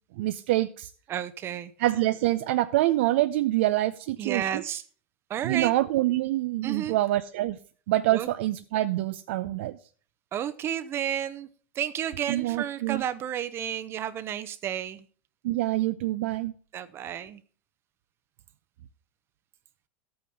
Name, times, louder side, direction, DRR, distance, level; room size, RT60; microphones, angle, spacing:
voice 1, 0.2-0.9 1.8-4.6 5.4-7.6 7.9-9.8 12.3-13.0 15.4-16.5, right 16 dB, 70° right, 10 dB, 0.7 m, -26 dB
voice 2, 1.1-1.7 4.2-4.8 5.3-5.7 6.6-7.0 8.1-8.3 10.3-11.5 11.7-15.1 16.7-17.4, right 10 dB, 40° right, 12 dB, 0.9 m, -32 dB
12.5 x 8.8 x 5.4 m, 0.42 s
hypercardioid pair, 105°, 7 cm